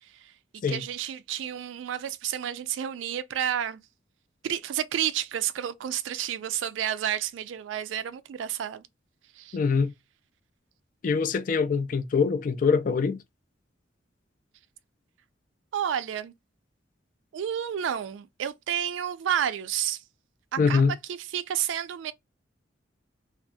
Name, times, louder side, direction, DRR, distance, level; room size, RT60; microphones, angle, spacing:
voice 1, 0.0-0.3 0.7-3.8 4.4-8.9 9.3-9.6 15.7-16.3 17.3-20.0 20.5-20.8 21.1-22.1, right 10 dB, 80° right, 0.3 m, -30 dB
voice 2, 9.5-9.9 11.0-13.2 20.6-21.0, left 5 dB, 45° left, 0.3 m, -24 dB
2.6 x 2.4 x 2.2 m
head